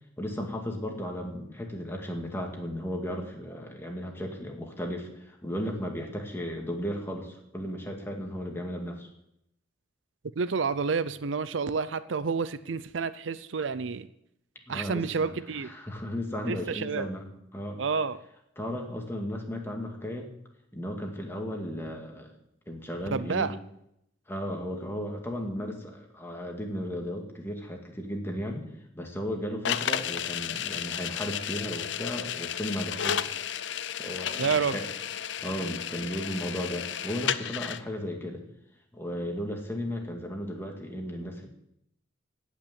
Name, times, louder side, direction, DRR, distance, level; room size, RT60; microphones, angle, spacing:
voice 1, 0.2-9.1 14.7-17.3 17.5-17.8 18.6-20.3 20.7-22.3 22.7-23.5 24.3-28.7 28.9-33.2 34.0-34.9 35.4-38.4 38.9-41.5, equal, 15° left, 1 dB, 2.1 m, -35 dB
voice 2, 10.4-14.1 14.7-15.7 16.5-17.1 17.8-18.2 23.1-23.5 34.4-34.8, right 5 dB, 80° right, 15 dB, 0.6 m, -29 dB
sound 1, 29.6-37.8, left 9 dB, 70° left, 0.6 m, -33 dB
17.0 x 6.1 x 8.1 m, 0.80 s
head